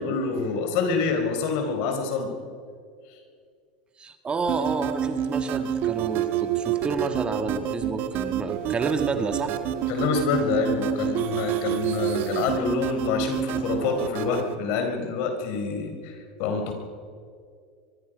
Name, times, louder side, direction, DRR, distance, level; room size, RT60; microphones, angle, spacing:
voice 1, 0.0-2.3 9.9-16.7, left 5 dB, 60° left, 5 dB, 4.2 m, -27 dB
voice 2, 4.0-9.6, right 4 dB, 20° right, 7 dB, 1.7 m, -29 dB
sound 1, 4.5-14.6, right 9 dB, 50° right, 1.6 m, -28 dB
23.5 x 22.5 x 5.2 m, 2.2 s
supercardioid pair, 115°, 4 cm